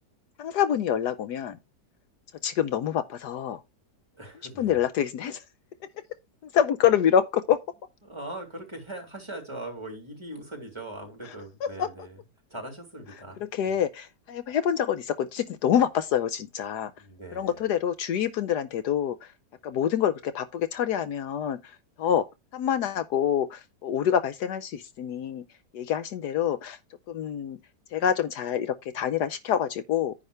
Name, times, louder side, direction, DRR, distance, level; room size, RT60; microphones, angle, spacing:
voice 1, 0.4-1.6 2.4-3.6 4.6-5.4 6.5-7.6 11.6-11.9 13.5-16.9 17.3-19.3 19.6-21.6 22.0-22.2 22.5-25.4 25.7-26.8 27.1-27.6 27.9-30.1, left 9 dB, 75° left, 1.3 m, -26 dB
voice 2, 4.1-4.8 8.0-12.2 12.5-13.7 17.0-17.6, right 1 dB, 15° right, 3.4 m, -40 dB
10.0 x 6.5 x 3.3 m
omnidirectional pair, 1.8 m